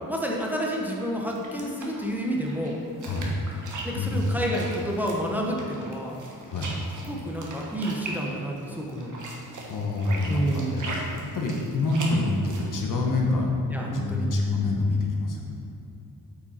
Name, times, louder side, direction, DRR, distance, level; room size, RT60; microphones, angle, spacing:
voice 1, 0.1-2.8 3.8-6.2 7.1-9.2 10.3-10.9 13.7-14.3, equal, 5° right, -2 dB, 0.9 m, -29 dB
sound 1, 1.0-12.7, right 2 dB, 55° right, 1.4 m, -40 dB
voice 2, 3.0-3.4 4.0-4.4 6.5-6.7 9.7-15.5, left 2 dB, 60° left, 0 dB, 1.2 m, -26 dB
8.5 x 5.1 x 4.3 m, 2.8 s
cardioid pair, 115°, 36 cm